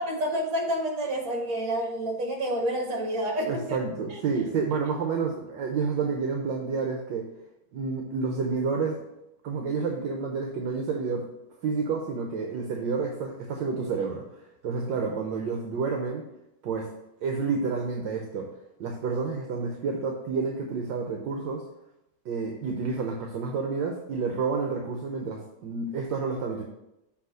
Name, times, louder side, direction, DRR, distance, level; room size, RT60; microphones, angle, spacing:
voice 1, 0.0-3.8 4.1-4.4, right 1 dB, 45° right, 1 dB, 1.8 m, -29 dB
voice 2, 3.5-7.3 7.7-9.0 9.4-11.2 11.6-14.2 14.6-16.2 16.6-16.9 17.2-18.5 18.8-21.6 22.2-26.6, right 4 dB, 70° right, 2 dB, 1.4 m, -29 dB
7.3 x 3.4 x 6.2 m, 0.90 s
omnidirectional pair, 2.3 m